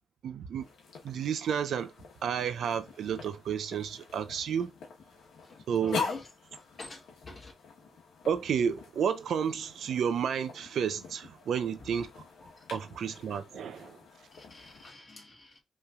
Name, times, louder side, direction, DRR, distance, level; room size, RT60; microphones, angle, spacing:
voice 1, 0.2-0.7 1.0-1.9 2.2-4.7 5.7-6.1 8.3-12.2 12.7-14.0, right 7 dB, 75° right, 0.6 m, -31 dB
sound 1, 0.6-14.9, left 5 dB, 90° left, 1.1 m, -44 dB
voice 2, 5.4-6.3 6.8-7.5 12.4-12.8 14.3-15.6, left 2 dB, 40° left, 2.1 m, -47 dB
5.4 x 3.2 x 2.4 m
cardioid pair, 85°, 0 cm